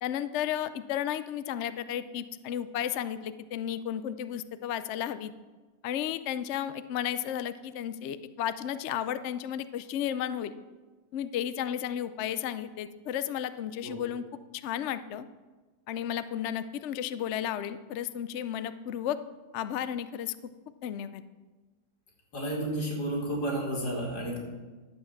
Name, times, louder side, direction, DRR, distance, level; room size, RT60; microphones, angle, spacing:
voice 1, 0.0-5.3 5.8-10.5 11.1-14.2 14.5-15.3 15.9-19.2 19.5-20.4 20.8-21.2, left 10 dB, 65° left, 13 dB, 0.7 m, -33 dB
voice 2, 22.3-24.4, right 1 dB, 85° left, -1 dB, 3.2 m, -31 dB
12.0 x 7.5 x 7.0 m, 1.3 s
omnidirectional pair, 1.7 m